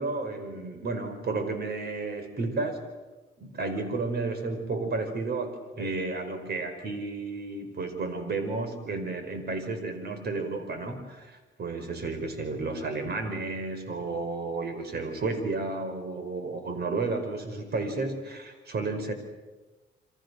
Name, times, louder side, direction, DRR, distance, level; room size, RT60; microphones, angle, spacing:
voice 1, 0.0-2.8 3.4-19.1, right 3 dB, 55° right, 8 dB, 5.1 m, -32 dB
28.5 x 25.5 x 6.4 m, 1.2 s
cardioid pair, 90°, 20 cm